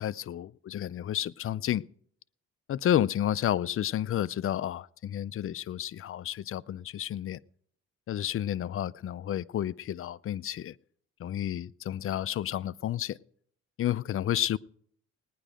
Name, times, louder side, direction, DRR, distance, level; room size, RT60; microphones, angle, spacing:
voice 1, 0.0-1.8 2.7-7.4 8.1-10.7 11.2-13.2 13.8-14.6, left 11 dB, 45° left, 0.4 m, -31 dB
18.5 x 10.0 x 5.0 m
cardioid pair, 90°, 30 cm